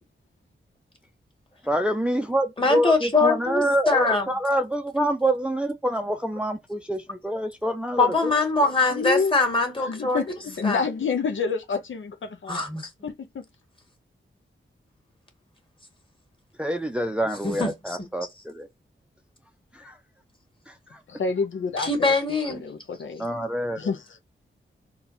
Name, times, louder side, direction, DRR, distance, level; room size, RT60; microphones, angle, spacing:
voice 1, 1.6-8.3 16.6-18.7 19.7-20.0 20.7-21.0 23.2-23.9, right 1 dB, 5° right, 0.5 m, -26 dB
voice 2, 2.6-4.3 8.0-10.4 10.6-10.8 12.5-12.9 17.4-18.0 21.8-22.6, left 3 dB, 25° left, 1.6 m, -23 dB
voice 3, 8.9-9.3 9.8-12.6 13.0-13.4 21.1-22.1 22.5-23.3 23.8-24.0, left 5 dB, 65° left, 0.6 m, -28 dB
3.9 x 2.3 x 4.1 m
wide cardioid pair, 80°, 21 cm